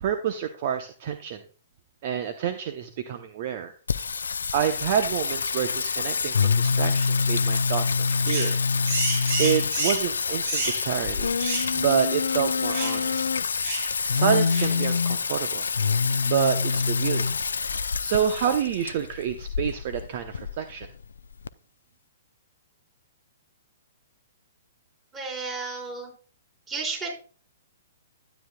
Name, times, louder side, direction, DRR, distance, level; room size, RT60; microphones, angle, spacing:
voice 1, 0.0-1.4 2.0-3.7 4.5-8.6 9.4-11.3 11.7-13.3 14.1-15.7 16.2-17.3 18.0-20.9, right 9 dB, 45° right, 8 dB, 0.8 m, -28 dB
Singing, 3.9-21.5, left 5 dB, 70° left, 0.4 m, -26 dB
sound 1, 8.2-8.5 8.8-10.1 10.4-10.8 11.4-11.7 12.0-12.1 12.7-13.0 13.6-13.9 14.5-14.7, right 2 dB, 60° right, 5.5 m, -30 dB
voice 2, 25.1-26.1 26.7-27.1, right 4 dB, 20° right, -1 dB, 4.4 m, -32 dB
12.5 x 9.1 x 2.3 m, 0.38 s
figure-of-eight pair, 115°, 0 cm